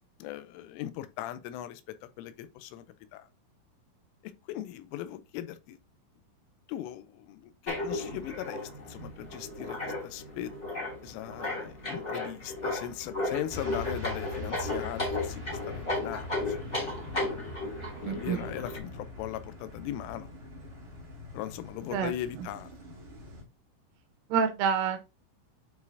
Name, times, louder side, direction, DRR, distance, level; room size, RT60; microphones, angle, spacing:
voice 1, 0.2-2.9 3.1-3.3 4.2-5.8 6.7-10.5 11.0-16.9 18.0-20.3 21.3-22.9, left 12 dB, 85° left, 3.1 m, -39 dB
sound 1, 7.7-18.8, left 2 dB, 25° left, 1.5 m, -35 dB
sound 2, 13.5-23.4, left 1 dB, 45° right, 2.0 m, -42 dB
voice 2, 17.8-18.4 21.9-22.1 22.4-22.5 24.3-25.0, right 7 dB, 85° right, 3.4 m, -28 dB
9.5 x 4.2 x 2.7 m
omnidirectional pair, 5.8 m